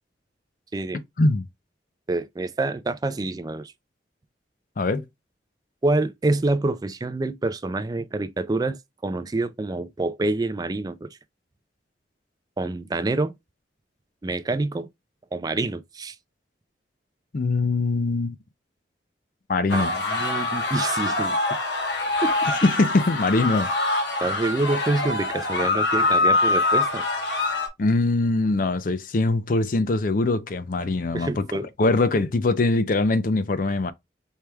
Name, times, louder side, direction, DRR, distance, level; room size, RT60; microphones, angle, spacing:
voice 1, 2.1-3.7 5.8-8.8 9.0-11.1 12.6-13.3 14.2-14.9 15.3-16.1 19.7-21.4 22.2-22.3 24.2-27.0 31.1-31.7, right 2 dB, 20° right, 0.3 m, -26 dB
voice 2, 4.8-5.1 17.3-18.4 19.5-19.9 22.5-23.7 27.8-31.5 31.8-33.9, left 2 dB, 50° left, 0.5 m, -22 dB
sound 1, 19.7-27.7, left 2 dB, 80° left, 1.2 m, -24 dB
4.5 x 3.4 x 2.2 m
head